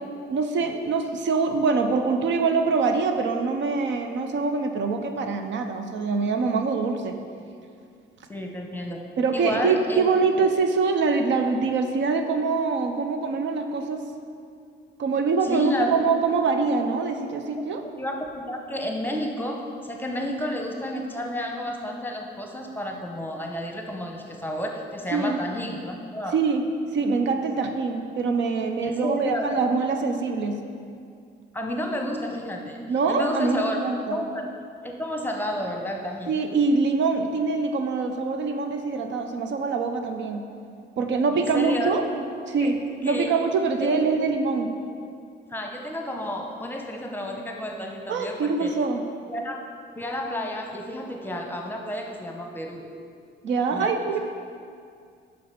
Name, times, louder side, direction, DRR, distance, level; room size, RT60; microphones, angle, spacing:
voice 1, 0.3-7.2 9.2-14.0 15.0-17.8 25.1-25.4 26.3-26.6 26.9-30.6 32.9-34.2 36.3-40.4 41.0-42.0 42.5-42.8 43.0-44.7 48.1-49.0 53.4-54.2, right 4 dB, 70° right, 6 dB, 0.6 m, -24 dB
voice 2, 8.3-9.0 9.3-10.0 15.4-16.0 18.0-26.4 28.8-29.6 31.5-32.8 33.1-33.8 34.1-34.5 34.8-36.4 41.3-42.0 42.6-42.7 43.0-43.3 43.8-44.0 45.5-48.8 49.3-49.6 50.0-52.9 53.7-53.9, equal, 10° left, 1 dB, 0.9 m, -31 dB
5.7 x 5.0 x 5.7 m, 2.3 s
cardioid pair, 90°, 20 cm